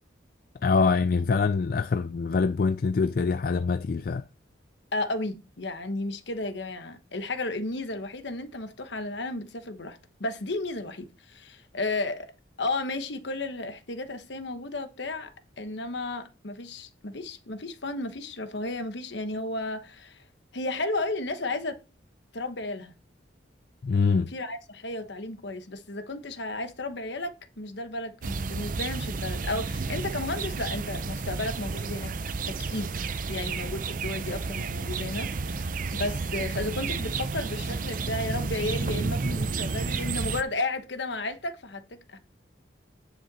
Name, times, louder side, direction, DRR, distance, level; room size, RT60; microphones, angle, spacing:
voice 1, 0.6-4.2 23.8-24.3, left 4 dB, 50° left, 0.3 m, -24 dB
voice 2, 4.9-12.3 12.6-20.2 20.5-21.8 22.3-22.9 24.3-32.1 32.5-32.9 33.3-42.2, left 2 dB, 65° left, 1.2 m, -33 dB
sound 1, 28.2-40.4, right 4 dB, 45° right, 0.5 m, -31 dB
10.0 x 5.7 x 4.2 m
head